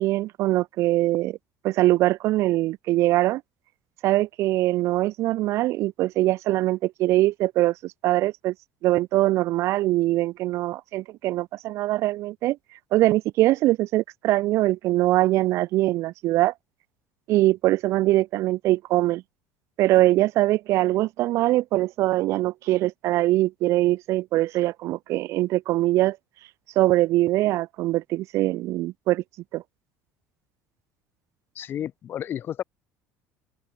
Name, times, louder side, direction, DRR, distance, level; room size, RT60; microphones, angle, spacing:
voice 1, 0.0-1.4 1.6-3.4 4.0-8.5 8.8-12.6 12.9-16.5 17.3-19.2 19.8-26.2 26.8-29.2 29.5-29.6, right 16 dB, 55° right, 0.7 m, -22 dB
voice 2, 31.6-32.6, left 10 dB, 40° left, 5.6 m, -32 dB
open air
cardioid pair, 145°, 6 cm